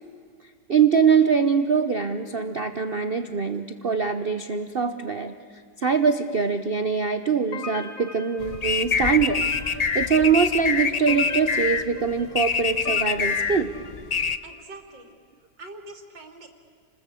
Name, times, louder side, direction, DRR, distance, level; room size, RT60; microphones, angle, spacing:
voice 1, 0.7-5.3 5.8-9.5 9.9-13.7, right 6 dB, 40° right, 9 dB, 0.9 m, -23 dB
sound 1, 7.5-14.4, left 4 dB, 50° left, 1.8 m, -41 dB
sound 2, 8.4-14.4, left 5 dB, 75° left, 0.3 m, -25 dB
voice 2, 14.4-15.2 15.6-16.5, right 2 dB, 85° right, 6 dB, 3.4 m, -43 dB
29.0 x 20.5 x 8.5 m, 2.2 s
omnidirectional pair, 1.9 m